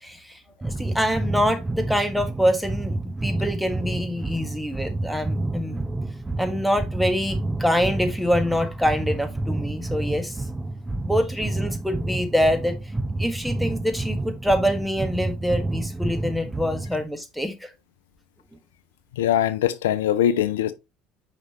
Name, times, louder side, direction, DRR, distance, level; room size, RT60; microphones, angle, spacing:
voice 1, 0.0-5.8 6.4-10.4 11.0-12.7 13.2-17.7, equal, ahead, 1.5 m, -25 dB
sound 1, 0.6-17.0, right 2 dB, 15° right, 0.5 m, -29 dB
voice 2, 19.2-20.7, left 10 dB, 80° left, 0.4 m, -22 dB
6.2 x 5.3 x 2.9 m
hypercardioid pair, 65°, 0 cm